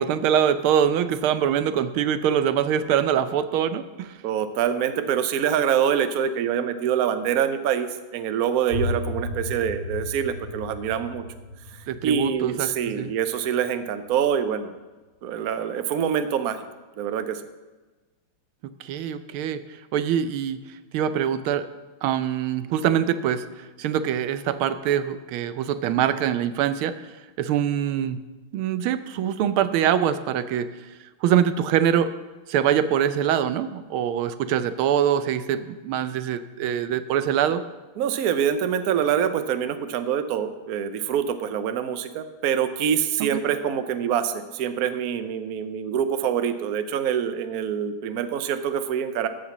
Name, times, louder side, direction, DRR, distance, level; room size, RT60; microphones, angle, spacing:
voice 1, 0.0-4.1 11.9-13.1 18.8-19.6 19.9-20.6 20.9-21.6 22.0-23.4 23.8-26.9 27.4-28.2 28.5-30.7 31.2-32.1 32.5-37.6 43.2-43.4, right 9 dB, 90° right, 11 dB, 1.5 m, -24 dB
voice 2, 4.2-11.2 12.0-14.7 15.2-16.6 17.0-17.4 38.0-49.3, right 8 dB, 65° right, 10 dB, 1.0 m, -25 dB
sound 1, 8.7-14.3, left 2 dB, 75° left, 2.3 m, -34 dB
14.0 x 5.2 x 7.2 m, 1.2 s
omnidirectional pair, 2.2 m